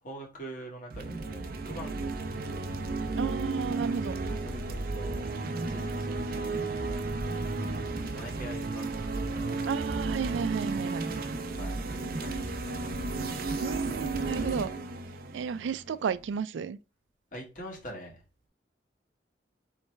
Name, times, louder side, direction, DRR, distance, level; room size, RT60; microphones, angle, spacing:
voice 1, 0.0-2.1 4.4-5.2 5.5-6.6 8.1-9.6 11.5-12.3 12.6-12.8 17.3-18.2, right 1 dB, 50° left, 1.7 m, -44 dB
sound 1, 0.9-16.3, right 3 dB, 55° right, 0.6 m, -33 dB
voice 2, 3.2-4.2 9.6-11.1 13.6-14.7 15.3-16.8, right 6 dB, 90° right, 0.4 m, -33 dB
4.5 x 3.2 x 3.2 m
head